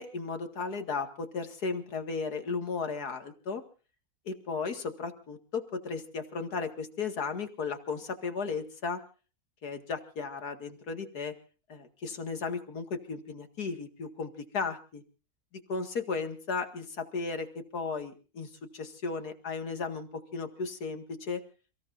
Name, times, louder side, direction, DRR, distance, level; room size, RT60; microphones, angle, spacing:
voice 1, 0.0-3.6 4.3-9.0 9.6-11.3 11.7-15.0 15.7-21.4, left 4 dB, 90° left, 6 dB, 2.5 m, -35 dB
29.5 x 17.0 x 2.6 m, 0.36 s
omnidirectional pair, 1.6 m